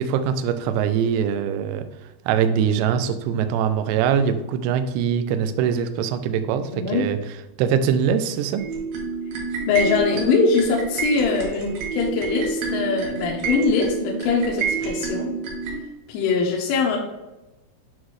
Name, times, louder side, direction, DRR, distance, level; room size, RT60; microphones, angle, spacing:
voice 1, 0.0-1.9 2.3-7.2 7.6-8.6, right 8 dB, 90° right, 9 dB, 2.5 m, -22 dB
voice 2, 6.7-7.1 9.7-15.3 16.1-17.0, left 5 dB, 85° left, -2 dB, 3.4 m, -22 dB
sound 1, 8.6-15.8, right 5 dB, 70° right, 3.0 m, -28 dB
9.2 x 4.1 x 3.1 m, 1.0 s
omnidirectional pair, 5.6 m